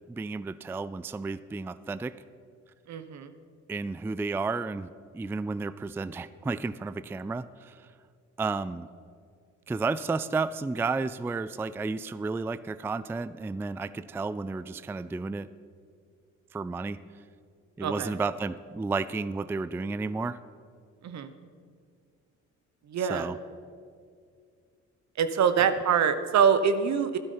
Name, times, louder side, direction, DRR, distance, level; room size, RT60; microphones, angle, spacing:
voice 1, 0.1-2.1 3.7-4.9 5.1-7.8 8.4-8.9 9.7-15.5 16.5-17.0 17.8-20.4 23.0-23.4, right 4 dB, 10° right, 15 dB, 0.3 m, -32 dB
voice 2, 2.9-3.3 17.8-18.1 21.0-21.3 22.9-23.3 25.2-27.2, right 7 dB, 65° right, 11 dB, 1.1 m, -24 dB
12.0 x 12.0 x 5.7 m, 2.2 s
cardioid pair, 90°, 30 cm